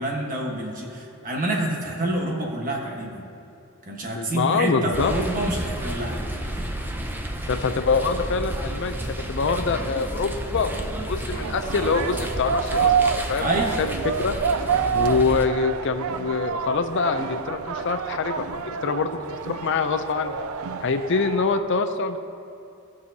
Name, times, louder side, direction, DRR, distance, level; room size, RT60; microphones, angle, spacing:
voice 1, 0.0-3.2 3.9-6.2 13.4-13.7, right 1 dB, 40° right, -1 dB, 1.3 m, -27 dB
voice 2, 4.2-5.1 7.5-13.5 13.8-14.4 14.9-19.2 19.5-20.3 20.8-22.2, left 4 dB, 55° left, 8 dB, 0.5 m, -25 dB
sound 1, 4.9-15.5, right 1 dB, 10° right, 0.5 m, -31 dB
sound 2, 11.3-21.6, right 6 dB, 75° right, 0.4 m, -28 dB
17.0 x 6.1 x 2.8 m, 2.7 s
head